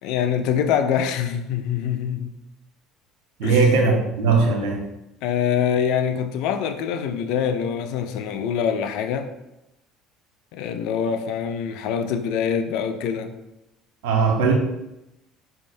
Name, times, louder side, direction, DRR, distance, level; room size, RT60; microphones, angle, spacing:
voice 1, 0.0-2.3 3.4-3.7 5.2-9.3 10.5-13.3, left 8 dB, 70° left, 0.6 m, -24 dB
voice 2, 3.4-4.9 14.0-14.5, right 4 dB, 75° right, 1.4 m, -19 dB
5.0 x 3.6 x 5.3 m
hypercardioid pair, 70°, 0 cm